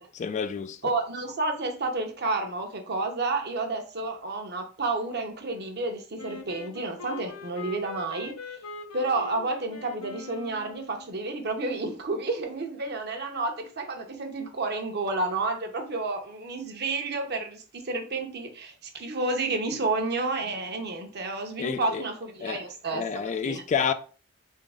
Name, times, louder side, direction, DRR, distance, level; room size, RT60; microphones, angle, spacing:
voice 1, 0.1-0.9 21.6-22.0 22.4-22.6 22.9-23.9, left 6 dB, 35° left, 0.3 m, -29 dB
voice 2, 0.8-8.5 8.9-23.6, right 3 dB, 50° right, 0.9 m, -30 dB
Wind instrument woodwind instrument, 6.2-11.2, left 3 dB, 85° left, 0.7 m, -42 dB
4.0 x 3.7 x 3.6 m
head